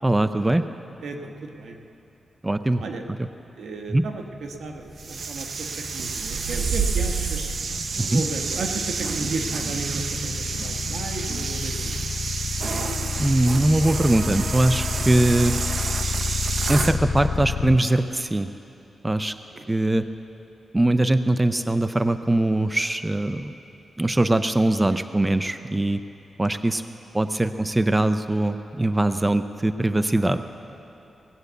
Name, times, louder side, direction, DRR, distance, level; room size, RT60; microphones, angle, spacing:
voice 1, 0.0-0.7 2.4-2.8 3.9-4.0 8.0-8.2 13.2-15.6 16.7-18.5 19.0-19.3 19.7-20.0 20.7-23.6 24.0-26.0 26.4-26.8 27.1-30.4, right 1 dB, 15° right, 10 dB, 0.4 m, -21 dB
voice 2, 1.0-1.8 2.8-3.0 3.6-7.6 8.1-12.0 15.1-15.2 19.5-19.6 21.6-21.8 27.7-27.8, right 3 dB, 85° right, 4 dB, 1.2 m, -34 dB
sound 1, 4.5-17.8, left 5 dB, 60° left, 0.4 m, -30 dB
sound 2, 5.0-17.0, right 5 dB, 60° right, 0.7 m, -29 dB
18.0 x 8.0 x 8.1 m, 2.9 s
wide cardioid pair, 100°, 0 cm